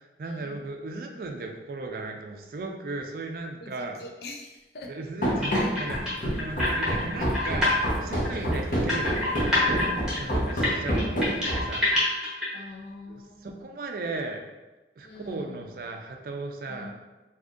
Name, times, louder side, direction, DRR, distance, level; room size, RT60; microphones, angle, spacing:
voice 1, 0.0-4.0 4.8-12.0 13.1-14.5 15.0-16.9, right 3 dB, 55° right, 3 dB, 0.4 m, -37 dB
voice 2, 3.6-4.9 5.5-5.7 8.3-8.6 12.5-13.6 15.0-15.6 16.7-16.9, left 2 dB, 65° left, 2 dB, 0.4 m, -43 dB
Run, 5.2-11.8, equal, 50° left, 0.8 m, -27 dB
sound 1, 5.4-7.8 8.1-12.5, left 2 dB, 5° right, 0.9 m, -26 dB
2.7 x 2.5 x 3.5 m, 1.1 s
head